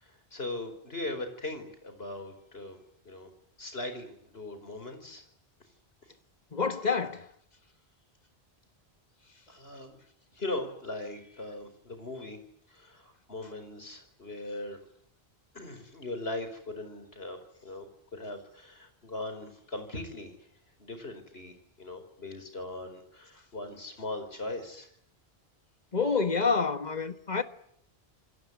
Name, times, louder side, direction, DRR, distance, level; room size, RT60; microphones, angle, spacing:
voice 1, 0.0-2.8 3.0-3.3 3.6-5.2 9.5-10.0 10.3-12.4 12.7-14.8 15.5-20.3 20.8-24.9, left 2 dB, 65° left, 5.0 m, -39 dB
voice 2, 6.5-7.3 25.9-27.4, left 5 dB, 40° left, 1.8 m, -28 dB
28.0 x 20.0 x 9.6 m
omnidirectional pair, 1.1 m